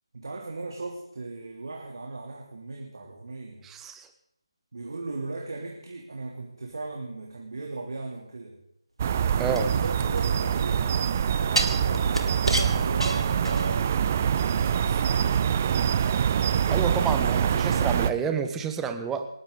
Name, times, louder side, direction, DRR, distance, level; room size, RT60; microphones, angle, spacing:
voice 1, 0.1-3.6 4.7-8.6 9.4-14.1 14.5-15.4, right 3 dB, 50° right, 0 dB, 2.9 m, -38 dB
voice 2, 3.6-4.1 9.4-9.7 16.7-19.3, right 6 dB, 5° right, 7 dB, 0.9 m, -29 dB
sound 1, 9.0-18.1, right 8 dB, 25° right, 0.5 m, -24 dB
sound 2, 9.5-10.7 11.6-13.9 14.3-14.4, right 1 dB, 80° right, 2.7 m, -30 dB
28.0 x 12.0 x 3.9 m, 0.78 s
figure-of-eight pair, 160°, 3 cm